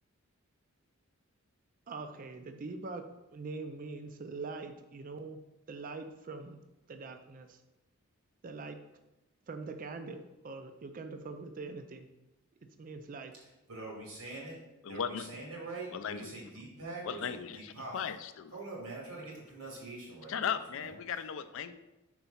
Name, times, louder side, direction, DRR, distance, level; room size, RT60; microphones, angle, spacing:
voice 1, 1.9-5.4 5.7-6.6 6.9-7.6 8.4-8.8 9.5-10.2 10.4-12.1 12.8-13.3, right 3 dB, 40° right, 8 dB, 0.4 m, -43 dB
voice 2, 13.7-14.6 14.9-18.0 18.5-20.9, right 2 dB, 85° right, -2 dB, 2.2 m, -44 dB
voice 3, 14.9-15.3 15.9-16.3 17.0-18.5 20.3-21.7, left 7 dB, 60° left, 11 dB, 0.4 m, -37 dB
4.6 x 4.0 x 5.6 m, 0.98 s
head